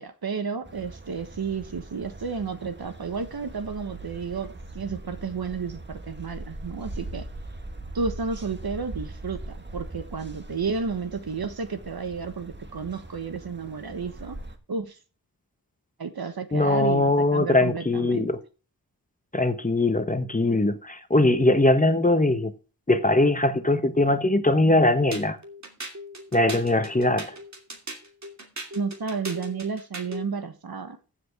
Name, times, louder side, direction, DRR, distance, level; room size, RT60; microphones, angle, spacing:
voice 1, 0.0-7.2 7.9-14.4 14.7-15.0 16.0-18.3 28.7-31.0, right 5 dB, 70° right, 1.4 m, -32 dB
sound 1, 0.6-14.6, right 2 dB, 30° right, 1.7 m, -41 dB
voice 2, 16.5-18.4 19.3-22.5 22.9-25.4 26.3-27.3, left 2 dB, 20° left, 1.1 m, -21 dB
sound 2, 25.1-30.3, equal, 45° right, 2.6 m, -38 dB
14.5 x 7.9 x 3.5 m
wide cardioid pair, 90°, 38 cm